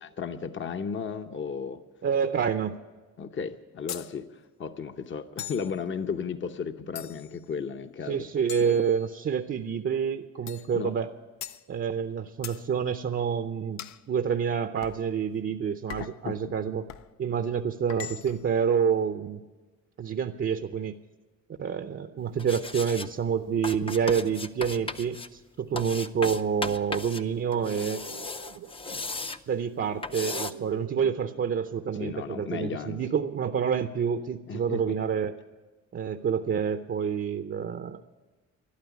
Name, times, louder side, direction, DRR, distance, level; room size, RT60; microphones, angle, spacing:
voice 1, 0.0-1.8 3.2-8.3 10.7-10.9 16.2-16.5 32.0-33.0 34.5-35.0, left 6 dB, 40° left, 8 dB, 0.9 m, -34 dB
voice 2, 2.0-2.7 8.1-11.1 11.7-13.8 14.1-16.9 17.2-19.4 20.0-21.0 21.6-28.0 29.5-35.3 35.9-38.0, right 7 dB, 40° right, 8 dB, 0.7 m, -28 dB
sound 1, 3.9-4.1 5.4-5.7 7.0-7.4 8.5-9.4 10.5-10.7 11.4-11.6 12.4-12.6 13.8-14.0 14.8-15.0 15.9-16.2 16.9-17.1 17.9-18.5, left 10 dB, 65° left, 0.6 m, -41 dB
sound 2, 22.4-23.1 23.6-25.3 25.8-27.2 27.5-29.4 30.0-30.5, left 3 dB, 20° left, 0.6 m, -36 dB
sound 3, 27.4-32.6, right 10 dB, 80° right, 1.1 m, -47 dB
13.0 x 11.5 x 8.3 m, 1.3 s
cardioid pair, 90°, 30 cm